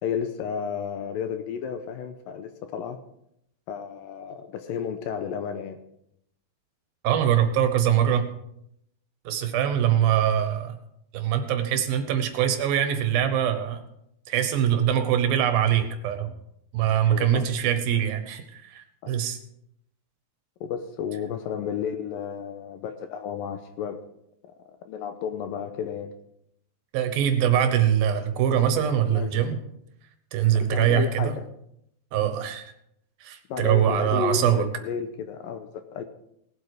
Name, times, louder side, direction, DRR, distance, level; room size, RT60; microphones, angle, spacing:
voice 1, 0.0-3.0 3.7-5.8 17.1-17.5 19.0-19.1 20.6-24.0 24.4-26.1 29.0-29.6 30.6-31.4 33.5-36.0, left 7 dB, 75° left, 8 dB, 2.3 m, -32 dB
voice 2, 7.0-8.3 9.2-10.8 11.1-13.8 14.3-16.3 16.7-19.4 26.9-29.6 30.3-31.3 32.1-32.7 33.2-34.6, right 10 dB, 75° right, 8 dB, 2.8 m, -23 dB
18.5 x 8.0 x 4.8 m, 0.77 s
omnidirectional pair, 4.5 m